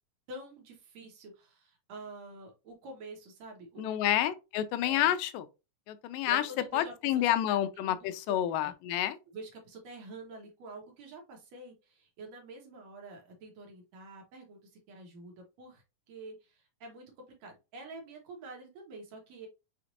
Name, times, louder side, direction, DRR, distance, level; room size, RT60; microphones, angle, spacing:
voice 1, 0.3-4.1 4.8-5.1 6.2-8.7 9.3-17.1 17.4-19.5, right 2 dB, 65° right, 2.1 m, -47 dB
voice 2, 3.8-5.5 5.9-6.4 6.7-9.2, left 12 dB, 90° left, 2.2 m, -29 dB
6.1 x 2.5 x 2.6 m
omnidirectional pair, 3.7 m